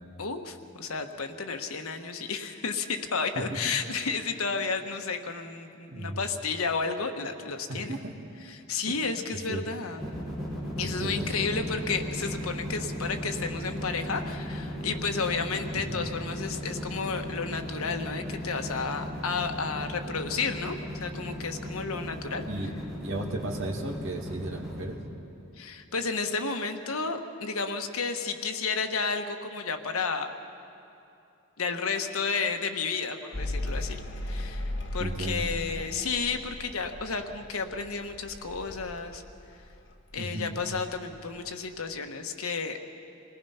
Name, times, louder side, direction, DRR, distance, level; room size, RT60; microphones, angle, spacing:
voice 1, 0.2-7.9 8.4-10.0 10.8-22.4 25.6-30.3 31.6-39.2 40.1-42.8, left 4 dB, 85° left, 6 dB, 1.3 m, -32 dB
voice 2, 3.4-3.7 5.9-6.2 7.7-8.1 8.9-9.0 9.5-9.6 10.8-11.5 15.7-16.0 22.5-22.7 23.0-25.0 35.0-35.4 40.2-40.6, right 1 dB, 65° right, 1 dB, 2.2 m, -35 dB
sound 1, 10.0-24.8, equal, ahead, 4.9 m, -36 dB
Mechanical fan, 33.3-40.2 40.5-41.3, left 1 dB, 60° left, 1.5 m, -37 dB
27.5 x 19.0 x 5.7 m, 2.7 s
head